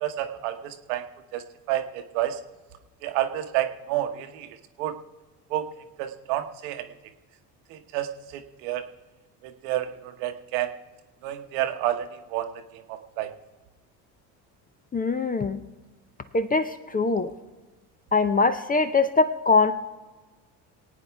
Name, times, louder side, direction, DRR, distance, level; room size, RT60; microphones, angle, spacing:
voice 1, 0.0-1.0 1.3-2.4 3.0-4.5 4.8-4.9 5.5-5.6 6.0-6.8 7.7-8.8 9.4-10.7 11.2-12.1 12.3-12.5 12.9-13.3, right 13 dB, 65° right, 8 dB, 1.2 m, -29 dB
voice 2, 14.9-15.6 16.3-17.3 18.1-19.7, left 4 dB, 15° left, 11 dB, 0.6 m, -22 dB
23.0 x 9.0 x 3.4 m, 1.2 s
hypercardioid pair, 60°, 50 cm